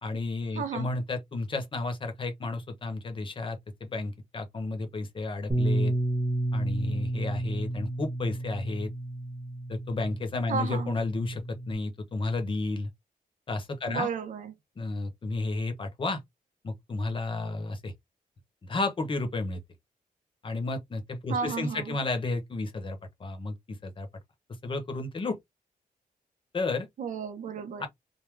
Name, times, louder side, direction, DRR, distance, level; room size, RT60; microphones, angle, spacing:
voice 1, 0.0-5.9 6.5-8.9 9.7-12.9 13.5-14.1 14.8-16.2 16.6-17.9 18.6-19.6 20.4-24.1 24.6-25.4 26.5-26.9 27.8-27.9, left 3 dB, 35° left, 0.9 m, -32 dB
voice 2, 0.5-0.9 10.5-11.0 13.9-14.5 21.3-22.0 27.0-27.9, right 6 dB, 60° right, 0.6 m, -33 dB
Bass guitar, 5.5-11.7, right 1 dB, 10° right, 1.2 m, -31 dB
3.5 x 2.1 x 3.1 m
wide cardioid pair, 145°, 15 cm